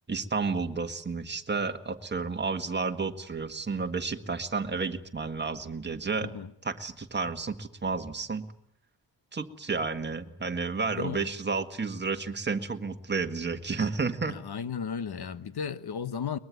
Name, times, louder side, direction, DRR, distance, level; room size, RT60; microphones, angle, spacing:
voice 1, 0.1-6.3 6.6-8.5 9.3-14.4, right 4 dB, 25° right, 1.7 m, -31 dB
voice 2, 10.9-11.3 14.2-16.4, left 7 dB, 60° left, 1.3 m, -35 dB
23.0 x 21.0 x 9.5 m
wide cardioid pair, 145°, 44 cm